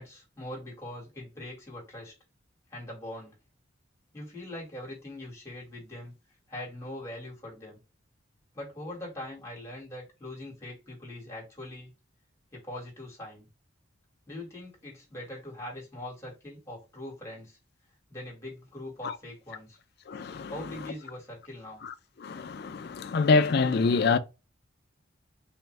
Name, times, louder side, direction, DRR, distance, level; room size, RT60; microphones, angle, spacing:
voice 1, 0.0-2.1 2.7-3.3 4.1-6.1 6.5-7.8 8.5-11.9 12.5-13.5 14.3-17.6 18.1-19.8 20.5-21.8, left 1 dB, 15° left, 1.6 m, -42 dB
voice 2, 20.1-20.5 21.8-21.9 22.2-24.2, left 4 dB, 50° left, 0.4 m, -25 dB
3.5 x 2.5 x 3.1 m
head